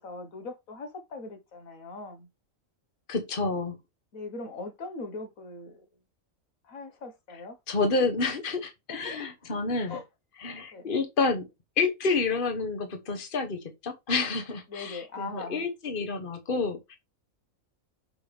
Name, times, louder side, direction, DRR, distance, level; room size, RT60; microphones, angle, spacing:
voice 1, 0.0-2.3 4.1-5.8 6.6-7.6 8.9-9.6 9.9-10.0 10.7-10.9 14.7-15.7, left 3 dB, 80° left, 1.8 m, -40 dB
voice 2, 3.1-3.8 7.7-10.0 10.4-11.5 11.8-17.0, left 4 dB, 40° left, 1.4 m, -29 dB
6.8 x 5.0 x 3.5 m
omnidirectional pair, 1.4 m